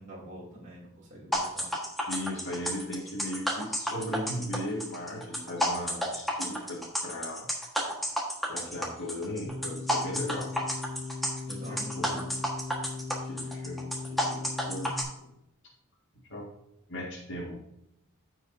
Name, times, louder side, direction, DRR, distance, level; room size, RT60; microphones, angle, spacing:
voice 1, 0.0-1.7 11.4-12.3, right 1 dB, 35° right, -6 dB, 2.6 m, -45 dB
sound 1, 1.3-15.0, equal, ahead, 1.4 m, -31 dB
voice 2, 2.1-7.5 8.5-10.5 11.7-12.3 13.2-13.8 14.1-15.4 16.3-16.5 16.9-17.6, left 1 dB, 55° left, -4 dB, 1.8 m, -37 dB
sound 2, 9.5-14.9, left 3 dB, 15° right, 0.9 m, -39 dB
15.0 x 5.1 x 2.6 m, 0.83 s
head